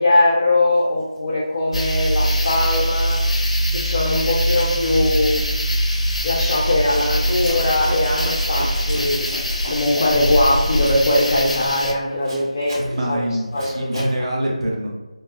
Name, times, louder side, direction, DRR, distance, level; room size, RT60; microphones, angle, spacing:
voice 1, 0.0-3.2 3.7-5.5 6.2-9.3 9.6-13.2 13.5-14.0, left 2 dB, 30° left, -5 dB, 0.4 m, -20 dB
Zipper (clothing), 1.0-1.2 1.7-3.1 3.3-3.7 4.0-14.2, equal, 25° right, 1.1 m, -37 dB
sound 1, 1.7-11.9, equal, 75° left, 0.6 m, -22 dB
voice 2, 12.8-14.9, right 1 dB, 50° right, -1 dB, 0.8 m, -25 dB
4.9 x 2.0 x 2.4 m, 1.2 s
figure-of-eight pair, 165°, 4 cm